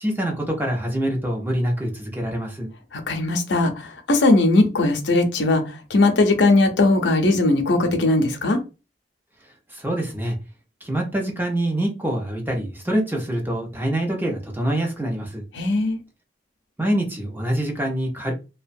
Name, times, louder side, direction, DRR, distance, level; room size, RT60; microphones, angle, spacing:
voice 1, 0.0-2.7 9.7-10.3 10.8-15.4 16.8-18.3, right 1 dB, 10° right, 0.7 m, -25 dB
voice 2, 2.9-8.6 15.5-16.0, left 2 dB, 80° left, 0.6 m, -19 dB
2.9 x 2.2 x 2.6 m
head